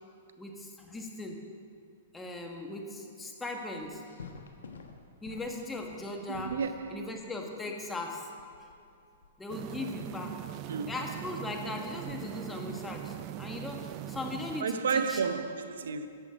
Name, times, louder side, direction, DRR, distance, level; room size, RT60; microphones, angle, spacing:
voice 1, 0.4-1.4 2.1-4.0 5.2-6.6 6.9-8.3 9.4-10.3 10.9-15.2, left 2 dB, 10° left, 1.4 m, -39 dB
sound 1, 3.8-7.2 8.4-9.3, left 5 dB, 85° left, 1.0 m, -48 dB
voice 2, 6.3-7.1 10.7-10.9 14.6-16.1, right 5 dB, 80° right, 0.7 m, -31 dB
sound 2, 9.5-14.6, right 13 dB, 40° right, 0.4 m, -41 dB
12.5 x 7.5 x 5.1 m
hypercardioid pair, 130°, 0 cm